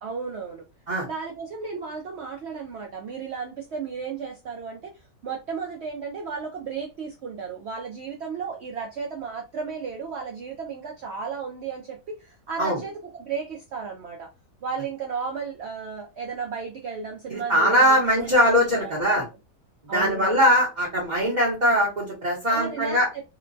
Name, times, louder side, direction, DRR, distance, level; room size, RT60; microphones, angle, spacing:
voice 1, 0.0-0.6 1.0-4.9 5.2-14.3 14.6-19.2 19.9-20.4 22.5-23.2, right 5 dB, 75° right, 1 dB, 0.6 m, -34 dB
voice 2, 17.3-19.2 19.9-23.1, equal, 35° right, -5 dB, 0.8 m, -21 dB
2.9 x 2.2 x 2.5 m, 0.27 s
omnidirectional pair, 1.7 m